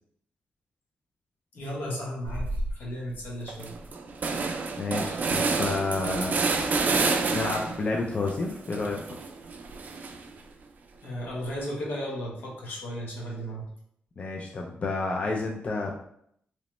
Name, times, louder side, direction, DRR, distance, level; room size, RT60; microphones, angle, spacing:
voice 1, 1.5-3.7 11.0-13.6, equal, 80° left, -4 dB, 1.0 m, -35 dB
sound 1, 2.3-2.7 3.1-3.2 3.5-7.9 8.3-10.4, right 4 dB, 55° right, 0.4 m, -29 dB
voice 2, 4.8-6.5 6.8-9.0 14.2-15.9, left 3 dB, 40° left, 0 dB, 0.4 m, -30 dB
3.0 x 2.0 x 2.9 m, 0.69 s
cardioid pair, 85°, 3 cm